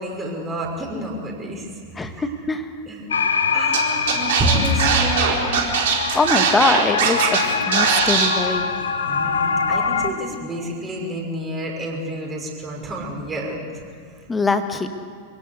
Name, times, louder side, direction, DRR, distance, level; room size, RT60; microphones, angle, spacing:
voice 1, 0.0-1.7 1.9-2.2 2.9-3.1 3.5-5.7 9.0-13.8, right 1 dB, 20° right, -1 dB, 5.9 m, -28 dB
voice 2, 2.0-2.7 6.1-8.7 14.3-14.9, left 3 dB, 15° left, 8 dB, 1.8 m, -22 dB
sound 1, 3.1-10.1, left 5 dB, 70° left, 1.4 m, -24 dB
Scratching (performance technique), 3.7-3.8 4.1-7.4 7.7-8.3, right 7 dB, 55° right, 4.3 m, -19 dB
27.0 x 17.5 x 8.2 m, 2.3 s
figure-of-eight pair, 90°, 0 cm